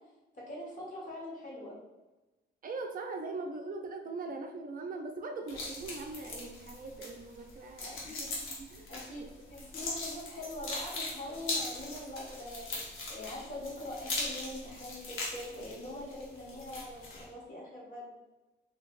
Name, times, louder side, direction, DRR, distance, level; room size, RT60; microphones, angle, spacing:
voice 1, 0.3-1.7 7.8-8.3 8.9-9.2 9.5-18.1, left 1 dB, 40° left, -4 dB, 1.5 m, -43 dB
voice 2, 2.6-8.0 8.6-8.9 9.2-9.3, right 3 dB, 45° right, 3 dB, 0.4 m, -40 dB
sound 1, 5.5-17.3, left 2 dB, 85° left, 1.0 m, -40 dB
3.8 x 2.7 x 2.5 m, 1.1 s
cardioid pair, 90°, 20 cm